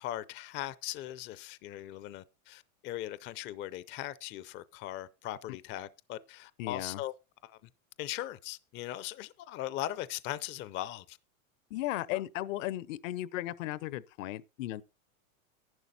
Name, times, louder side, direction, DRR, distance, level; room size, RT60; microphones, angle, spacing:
voice 1, 0.0-7.1 7.4-7.6 8.0-11.2, left 14 dB, 30° left, 0.5 m, -39 dB
voice 2, 6.6-7.0 11.7-14.8, left 15 dB, 65° left, 0.8 m, -36 dB
11.0 x 10.0 x 4.1 m
supercardioid pair, 135°, 42 cm